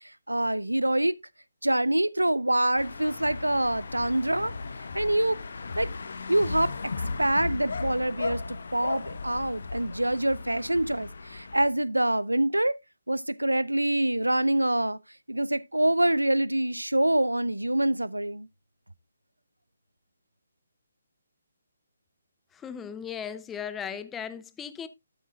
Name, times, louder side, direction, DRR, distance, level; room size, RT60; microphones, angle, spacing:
voice 1, 0.3-1.1 1.6-4.5 4.9-5.4 5.8-5.9 6.3-6.8 7.2-12.7 13.1-15.0 15.3-18.5, right 1 dB, 80° right, 0.5 m, -25 dB
sound 1, 2.8-11.7, left 4 dB, 55° left, 0.9 m, -36 dB
voice 2, 22.6-24.9, left 8 dB, 10° left, 0.5 m, -37 dB
12.5 x 7.4 x 2.4 m
figure-of-eight pair, 140°, 0 cm